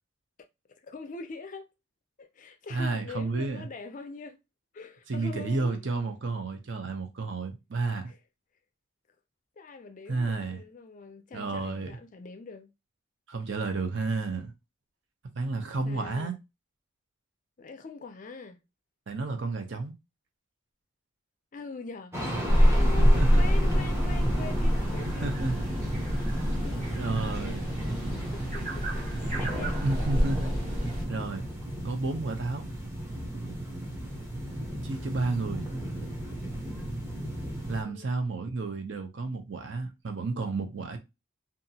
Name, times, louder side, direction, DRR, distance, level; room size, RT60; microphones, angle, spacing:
voice 1, 0.8-1.7 2.2-4.4 4.7-5.9 8.1-8.2 9.6-12.7 15.8-16.4 17.6-18.6 21.5-25.3 26.6-26.9 27.4-27.6 28.3-29.1 29.4-29.8 37.8-38.1, left 3 dB, 40° left, 0.4 m, -43 dB
voice 2, 2.7-3.7 5.1-8.1 10.1-10.6 11.3-11.9 13.3-14.5 15.3-16.3 19.1-19.9 22.7-23.6 25.2-25.6 27.0-27.7 29.8-30.6 31.1-31.5 31.8-32.6 34.8-35.7 37.7-41.0, right 3 dB, 60° right, 0.6 m, -31 dB
sound 1, 22.1-37.8, right 1 dB, 10° right, 0.6 m, -34 dB
sound 2, 22.5-31.0, equal, 35° right, 1.1 m, -26 dB
2.8 x 2.4 x 2.7 m
head